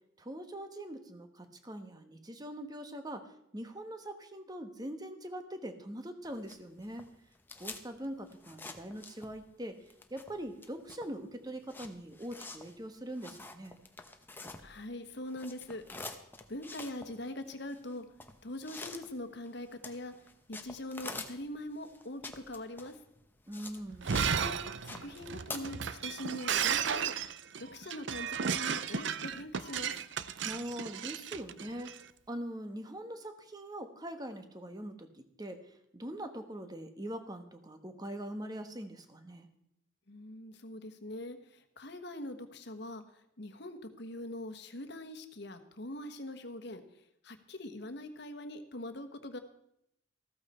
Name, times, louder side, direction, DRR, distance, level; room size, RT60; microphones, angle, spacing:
voice 1, 0.2-3.3 3.5-7.0 7.6-9.8 10.1-13.8 23.5-24.1 30.4-31.9 32.3-35.6 35.9-39.5, right 1 dB, 20° right, 7 dB, 1.2 m, -42 dB
sound 1, 6.2-9.6 9.8-15.0 15.2-24.4 24.7-25.6, left 3 dB, 10° left, 0.9 m, -47 dB
voice 2, 14.6-16.2 16.5-18.0 18.4-20.1 20.5-23.0 24.1-24.6 24.8-27.1 27.7-29.9 40.1-43.0 43.4-46.8 47.2-49.4, left 1 dB, 55° left, 8 dB, 1.3 m, -43 dB
Shatter, 23.9-32.0, right 7 dB, 60° right, 0.6 m, -34 dB
14.5 x 13.5 x 4.3 m, 0.77 s
head